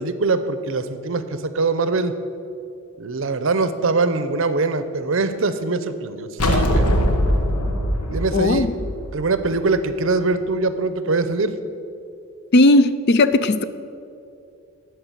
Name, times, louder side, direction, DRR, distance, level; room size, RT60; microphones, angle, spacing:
voice 1, 0.0-2.1 3.0-6.9 8.1-8.7 9.1-11.6, right 3 dB, 60° right, 11 dB, 0.6 m, -23 dB
sound 1, 6.4-9.8, equal, 85° left, 1.1 m, -21 dB
voice 2, 8.3-8.7 12.5-13.6, left 2 dB, 45° left, 13 dB, 0.4 m, -16 dB
12.0 x 4.7 x 8.3 m, 2.6 s
head